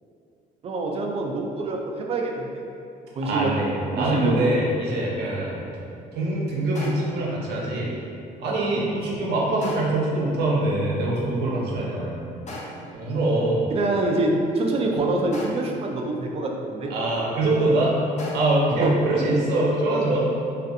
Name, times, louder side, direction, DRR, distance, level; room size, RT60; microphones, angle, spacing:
voice 1, 0.6-2.5 3.1-3.5 3.9-4.5 8.7-9.0 13.7-16.9 18.7-18.9, right 2 dB, 35° right, 1 dB, 0.3 m, -25 dB
voice 2, 3.2-5.7 6.1-7.9 8.4-12.2 12.9-13.6 16.9-18.0 18.3-20.3, right 2 dB, 75° right, -4 dB, 0.6 m, -24 dB
sound 1, 4.0-4.5 6.8-7.3 9.6-10.1 12.5-13.0 15.3-15.9 18.2-18.8, left 1 dB, 45° left, 0.5 m, -38 dB
2.5 x 2.4 x 2.5 m, 2.6 s
cardioid pair, 110°, 17 cm